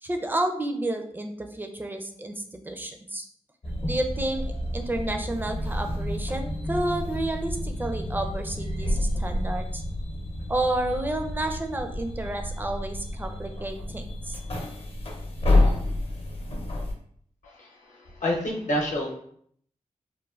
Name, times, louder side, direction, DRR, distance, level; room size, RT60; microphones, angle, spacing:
voice 1, 0.0-3.2 3.9-4.4 4.7-9.8 10.5-14.4, right 1 dB, 15° right, 5 dB, 0.4 m, -30 dB
sound 1, 3.6-16.9, left 1 dB, 45° left, 0.6 m, -29 dB
voice 2, 17.4-19.1, left 1 dB, 80° left, -2 dB, 0.8 m, -29 dB
3.1 x 2.1 x 2.3 m, 0.63 s
cardioid pair, 55°, 13 cm